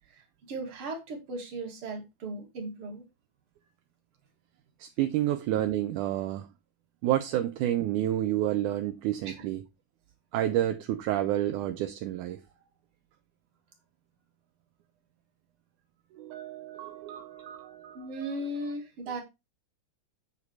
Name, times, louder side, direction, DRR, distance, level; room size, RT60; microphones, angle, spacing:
voice 1, 0.1-3.0 9.3-9.4 17.1-17.2 17.9-19.2, right 2 dB, 45° right, 2.7 m, -37 dB
voice 2, 4.8-6.5 7.0-9.6 10.3-12.4 16.1-18.1, right 13 dB, 80° right, 2.1 m, -29 dB
8.3 x 4.9 x 4.6 m
omnidirectional pair, 3.7 m